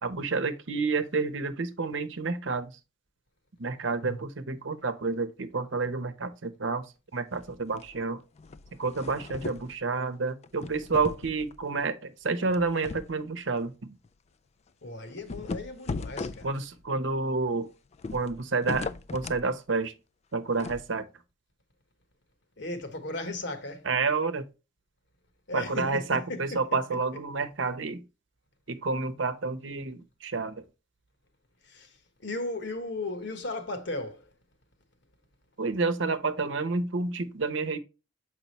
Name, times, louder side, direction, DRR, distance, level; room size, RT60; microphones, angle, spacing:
voice 1, 0.0-2.7 3.6-6.8 7.1-8.2 8.8-13.9 16.4-17.7 18.1-19.9 20.3-21.1 23.9-24.4 25.5-28.0 28.7-30.6 35.6-37.8, right 4 dB, 85° right, 0.8 m, -29 dB
sound 1, 7.3-8.0 8.4-9.7 10.4-11.6 12.5-13.2 13.5-13.6 14.0-14.1 15.1-16.9 17.9-19.5 20.6-20.8, left 3 dB, 35° left, 0.4 m, -38 dB
voice 2, 14.8-16.5 22.6-23.9 25.5-27.0 31.6-34.3, left 2 dB, 65° left, 1.3 m, -36 dB
7.0 x 4.9 x 3.0 m
head